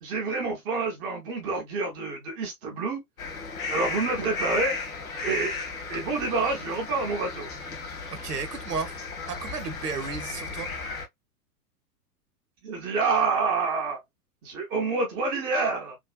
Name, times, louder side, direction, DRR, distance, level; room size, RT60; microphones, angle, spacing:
voice 1, 0.0-3.0 3.7-4.8 5.2-5.5 5.9-7.5 12.6-14.0 14.4-16.0, right 4 dB, 10° right, 0.3 m, -27 dB
sound 1, 3.2-11.1, left 4 dB, 65° left, 1.2 m, -35 dB
voice 2, 8.1-8.9 9.3-10.7, right 5 dB, 80° right, 0.8 m, -33 dB
3.2 x 2.2 x 2.3 m
figure-of-eight pair, 95°, 46 cm